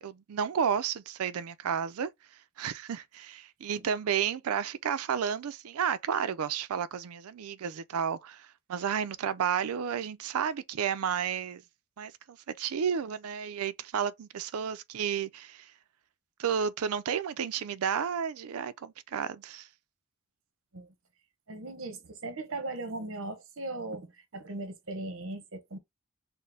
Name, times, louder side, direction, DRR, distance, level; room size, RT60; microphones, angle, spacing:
voice 1, 0.0-2.1 2.6-11.6 12.0-15.7 16.4-19.7, right 7 dB, 85° right, 0.4 m, -32 dB
voice 2, 21.5-25.8, right 2 dB, 65° right, 0.9 m, -38 dB
4.3 x 2.1 x 3.3 m
head